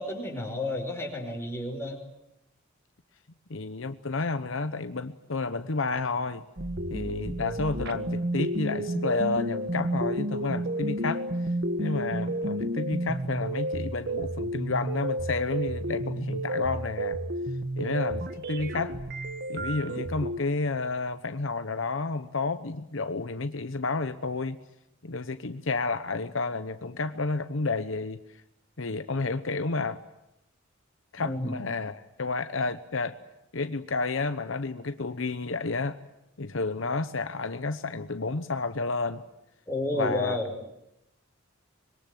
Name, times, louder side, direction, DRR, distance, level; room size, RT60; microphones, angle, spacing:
voice 1, 0.0-2.0 31.2-31.6 39.7-40.5, left 1 dB, 15° left, 1 dB, 5.3 m, -31 dB
voice 2, 3.5-6.5 6.9-11.3 11.8-17.2 17.8-19.0 19.5-24.6 25.0-28.2 28.8-30.0 31.1-33.2 33.5-36.0 36.4-39.2 39.9-40.4, left 3 dB, 70° left, 10 dB, 0.9 m, -31 dB
sound 1, 6.6-20.4, right 1 dB, 55° right, 1.6 m, -31 dB
25.5 x 22.0 x 9.2 m, 0.86 s
head